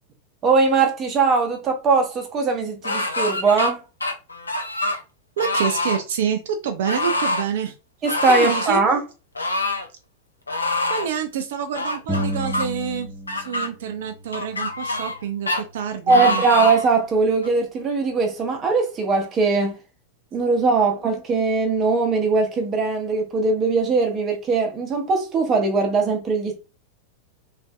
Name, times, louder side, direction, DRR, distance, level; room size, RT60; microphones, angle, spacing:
voice 1, 0.4-3.8 8.0-9.0 16.1-19.8 20.3-26.5, right 4 dB, 25° right, 1.0 m, -20 dB
sound 1, 2.8-3.7 4.0-5.0 5.4-6.0 6.8-7.4 8.0-8.7 9.3-9.9 10.5-11.1 11.7-12.7 13.3-13.7 14.3-15.2 15.5-15.6 16.1-16.9 17.4-17.5, left 2 dB, 80° left, 0.5 m, -25 dB
voice 2, 5.4-7.7 8.3-8.8 10.9-16.4, right 8 dB, 55° right, 0.4 m, -27 dB
sound 2, 12.1-13.6 13.8-15.6, equal, ahead, 0.7 m, -32 dB
3.2 x 2.6 x 2.2 m
figure-of-eight pair, 90°, 0 cm